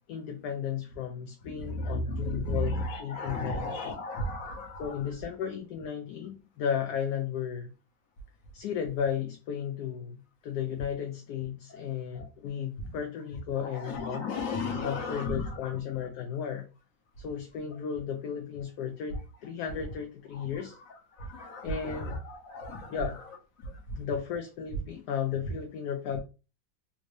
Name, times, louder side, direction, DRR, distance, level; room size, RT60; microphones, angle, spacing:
voice 1, 0.1-4.0 4.8-7.7 8.5-14.4 14.8-16.7 17.2-20.8 21.6-22.2 22.9-23.2 24.0-26.2, left 8 dB, 70° left, 4 dB, 1.0 m, -34 dB
voice 2, 1.4-5.0 12.1-12.2 12.8-12.9 13.7-15.5 21.2-23.0 23.6-24.0, left 1 dB, 55° left, 2 dB, 1.2 m, -34 dB
3.5 x 2.6 x 3.1 m, 0.32 s
omnidirectional pair, 2.0 m